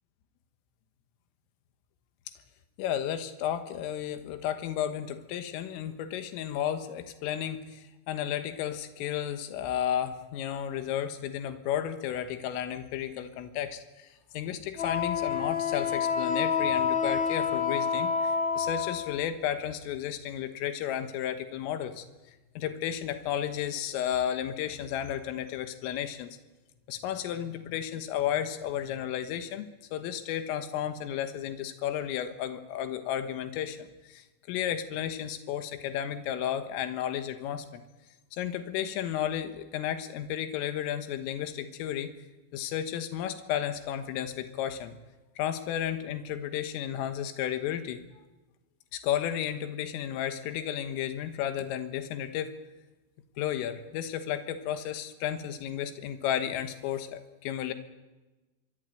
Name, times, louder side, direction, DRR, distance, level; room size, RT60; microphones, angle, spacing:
voice 1, 2.8-26.3 26.9-37.8 38.3-42.1 42.5-45.0 45.4-48.0 48.9-52.6 53.4-57.7, left 10 dB, 90° left, 9 dB, 4.0 m, -33 dB
Wind instrument woodwind instrument, 14.8-19.2, left 6 dB, 65° left, 0.7 m, -28 dB
25.5 x 23.0 x 9.2 m, 1.1 s
omnidirectional pair, 5.7 m